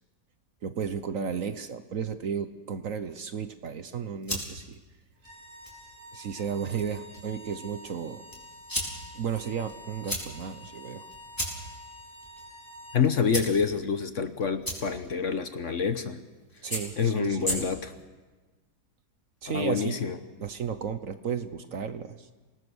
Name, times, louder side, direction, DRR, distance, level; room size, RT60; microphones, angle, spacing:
voice 1, 0.6-4.8 6.1-8.2 9.1-11.1 16.6-17.7 19.4-20.0 20.4-22.3, right 7 dB, 55° right, 10 dB, 1.2 m, -34 dB
sound 1, 3.9-18.0, equal, 10° left, 4.7 m, -39 dB
sound 2, 5.2-13.1, equal, 75° right, 4.0 m, -48 dB
voice 2, 12.9-16.2 17.0-17.9 19.5-20.2, left 6 dB, 50° left, 9 dB, 1.2 m, -27 dB
27.5 x 19.0 x 6.3 m, 1.3 s
omnidirectional pair, 1.8 m